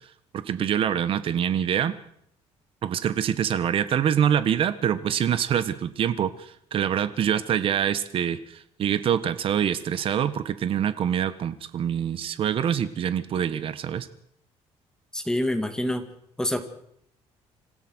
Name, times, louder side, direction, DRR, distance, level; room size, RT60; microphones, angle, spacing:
voice 1, 0.3-2.0 2.8-14.1, right 9 dB, 50° right, 13 dB, 1.4 m, -25 dB
voice 2, 15.1-16.1 16.4-16.7, left 1 dB, 5° left, 7 dB, 2.2 m, -26 dB
27.0 x 16.0 x 6.4 m, 0.72 s
cardioid pair, 135°, 12 cm